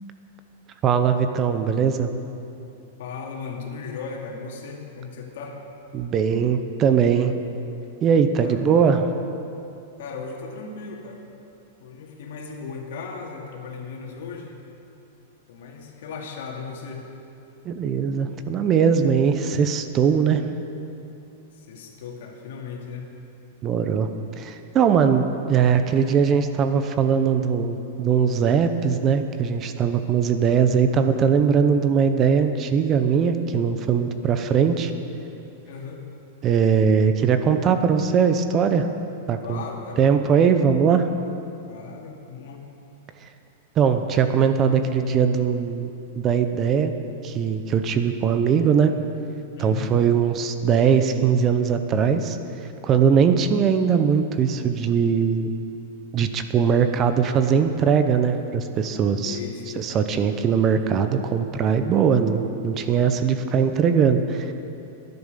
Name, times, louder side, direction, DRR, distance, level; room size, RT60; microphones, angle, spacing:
voice 1, 0.8-2.1 5.9-7.4 8.0-9.0 17.6-20.4 23.6-24.1 24.4-34.9 36.4-38.9 39.3-39.6 40.0-41.1 43.8-45.9 46.2-46.9 47.2-48.9 49.6-52.4 52.8-55.5 56.1-59.4 59.8-64.5, right 7 dB, 30° right, 8 dB, 0.8 m, -20 dB
voice 2, 3.0-5.6 8.2-8.9 10.0-11.2 11.8-14.6 15.5-17.1 21.5-23.1 35.7-36.0 39.4-40.4 41.7-42.6 49.6-50.0 59.2-59.8, left 5 dB, 70° left, 0 dB, 2.5 m, -36 dB
12.5 x 10.5 x 6.8 m, 2.7 s
supercardioid pair, 145°, 0 cm